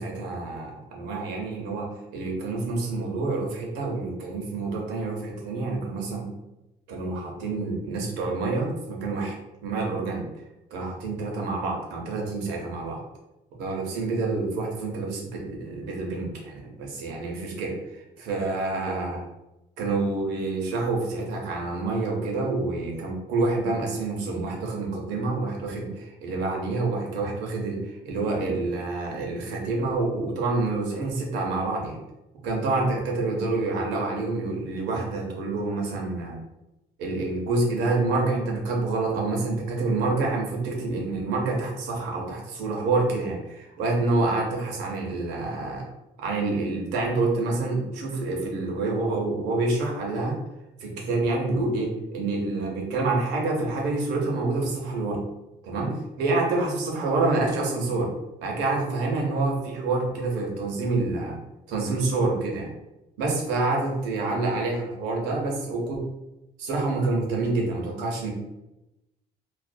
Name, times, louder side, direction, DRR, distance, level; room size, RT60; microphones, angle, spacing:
voice 1, 0.0-1.9 2.1-6.3 6.9-9.3 9.6-10.2 10.7-13.0 13.6-19.2 19.8-32.0 32.4-36.4 37.0-45.8 46.2-50.4 50.8-55.2 55.6-58.1 58.4-61.4 61.7-62.7 63.2-66.0 66.6-68.3, right 3 dB, 85° right, 0 dB, 0.8 m, -27 dB
2.4 x 2.1 x 2.5 m, 0.93 s
cardioid pair, 110°, 17 cm